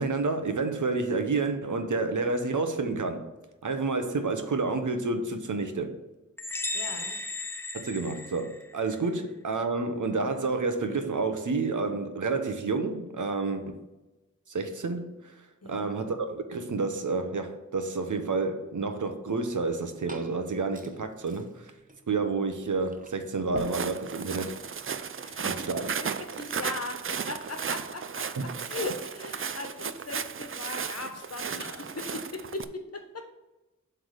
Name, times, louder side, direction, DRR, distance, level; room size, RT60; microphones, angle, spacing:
voice 1, 0.0-3.3 3.6-6.0 7.7-13.8 14.5-21.7 22.1-24.6 25.4-25.9 28.4-28.5, right 3 dB, 80° right, 0.9 m, -30 dB
sound 1, 6.4-9.0, left 2 dB, 10° left, 0.5 m, -35 dB
voice 2, 6.7-7.2 15.6-15.9 25.2-25.5 25.8-25.9 26.4-33.2, left 2 dB, 55° left, 1.2 m, -38 dB
Liquid, 19.6-26.7, right 2 dB, 25° right, 0.8 m, -48 dB
Walk footsteps, 23.6-32.6, right 6 dB, 45° right, 0.4 m, -35 dB
7.6 x 3.4 x 6.5 m
wide cardioid pair, 85°, 30 cm